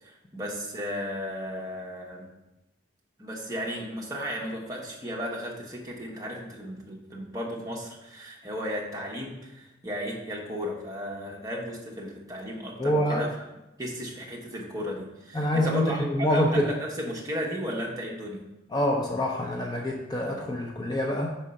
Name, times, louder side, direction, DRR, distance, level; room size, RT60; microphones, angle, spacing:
voice 1, 0.0-2.3 3.2-13.3 13.8-18.4, equal, 20° right, -2 dB, 1.0 m, -35 dB
voice 2, 12.8-13.3 15.3-16.7 18.7-21.3, left 1 dB, 20° left, 0 dB, 0.5 m, -26 dB
5.4 x 3.6 x 5.2 m, 0.96 s
head